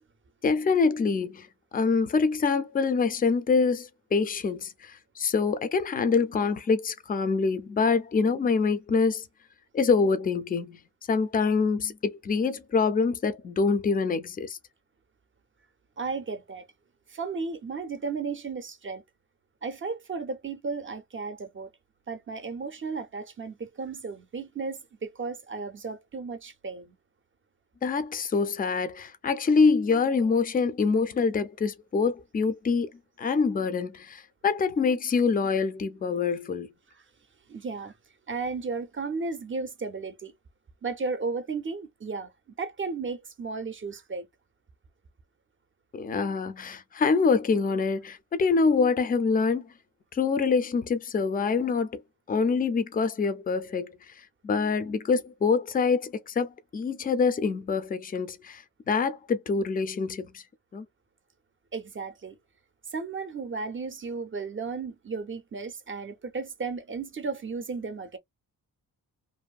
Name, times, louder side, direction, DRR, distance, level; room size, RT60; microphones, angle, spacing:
voice 1, 0.4-1.5 1.7-9.2 9.7-10.8 11.1-14.6 27.8-32.9 33.2-36.7 45.9-49.7 50.1-52.0 52.3-54.0 54.4-60.4 60.7-60.8, left 4 dB, 25° left, 0.4 m, -25 dB
voice 2, 16.0-16.7 17.1-19.0 19.6-21.7 22.1-27.0 36.9-37.0 37.5-38.0 38.3-40.3 40.8-42.3 42.6-44.3 61.7-62.4 62.9-68.2, right 4 dB, 30° right, 0.5 m, -34 dB
2.6 x 2.5 x 2.3 m
wide cardioid pair, 130°, 39 cm